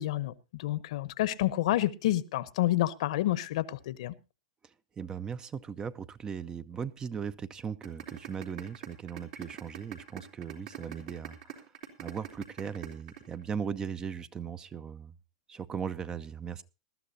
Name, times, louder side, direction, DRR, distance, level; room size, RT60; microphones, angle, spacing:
voice 1, 0.0-4.1, left 15 dB, 65° left, 0.9 m, -29 dB
voice 2, 5.0-11.6 12.0-15.2 15.5-16.6, right 7 dB, 20° right, 0.6 m, -38 dB
sound 1, 7.8-13.8, right 11 dB, 60° right, 3.3 m, -42 dB
20.0 x 12.5 x 2.8 m
hypercardioid pair, 125°, 4 cm